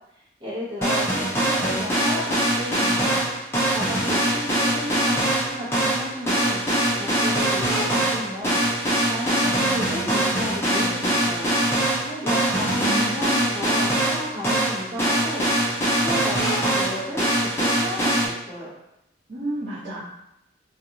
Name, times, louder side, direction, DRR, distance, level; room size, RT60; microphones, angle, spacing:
voice 1, 0.4-3.2 3.7-11.5 11.9-15.5 15.9-18.7, left 1 dB, 25° right, -7 dB, 0.8 m, -33 dB
sound 1, 0.8-18.3, right 1 dB, 15° left, 0.5 m, -23 dB
voice 2, 9.4-11.1 12.0-12.2 12.5-13.2 19.3-20.0, right 1 dB, 65° right, -12 dB, 1.2 m, -33 dB
2.4 x 2.4 x 2.9 m, 0.85 s
head